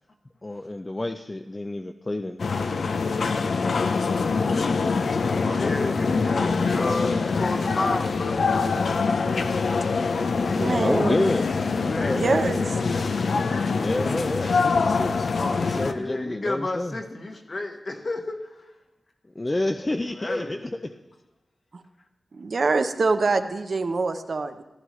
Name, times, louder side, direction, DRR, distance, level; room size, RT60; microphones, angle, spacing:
voice 1, 0.4-2.5 10.4-11.5 11.8-12.9 13.8-17.0 19.4-20.6, left 1 dB, 25° left, 6 dB, 0.4 m, -29 dB
sound 1, 2.4-15.9, left 4 dB, 80° left, 0.6 m, -24 dB
voice 2, 5.4-8.4 11.7-12.2 15.3-18.6 20.2-21.0, left 2 dB, 50° left, 4 dB, 1.2 m, -31 dB
voice 3, 10.6-11.4 12.1-12.7 21.7-21.8 22.3-24.6, right 3 dB, 60° right, 8 dB, 0.7 m, -25 dB
15.5 x 12.5 x 3.1 m, 1.0 s
wide cardioid pair, 105°, 0 cm